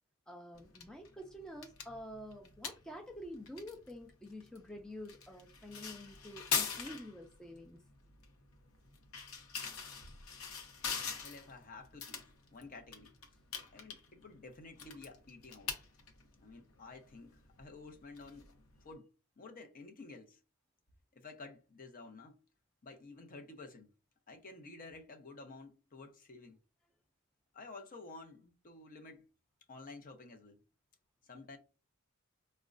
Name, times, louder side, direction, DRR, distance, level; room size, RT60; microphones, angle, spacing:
voice 1, 0.3-7.8, equal, 5° left, 0.3 m, -48 dB
sound 1, 0.6-18.9, left 6 dB, 85° left, 0.7 m, -44 dB
voice 2, 11.2-13.2 13.7-15.7 16.4-18.6 18.8-19.1 19.4-20.4 21.1-22.4 22.8-23.9 24.3-26.6 27.5-29.3 29.7-30.6 31.2-31.6, left 3 dB, 40° left, 0.6 m, -52 dB
4.9 x 2.1 x 2.5 m
head